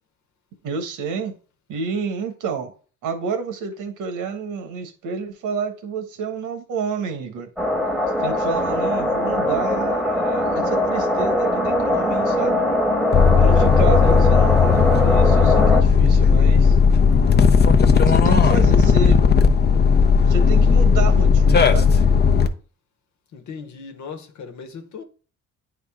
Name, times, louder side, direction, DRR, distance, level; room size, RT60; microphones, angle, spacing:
voice 1, 0.6-1.3 1.7-2.7 3.0-7.5 8.2-12.6 13.4-16.7 18.1-19.2 20.3-21.9, right 5 dB, 85° right, 1.4 m, -29 dB
sound 1, 7.6-15.8, left 1 dB, 5° left, 1.2 m, -21 dB
sound 2, 13.1-22.5, left 6 dB, 35° left, 0.7 m, -15 dB
voice 2, 23.3-25.0, left 5 dB, 70° left, 1.2 m, -37 dB
9.4 x 3.8 x 3.6 m
cardioid pair, 90°, 30 cm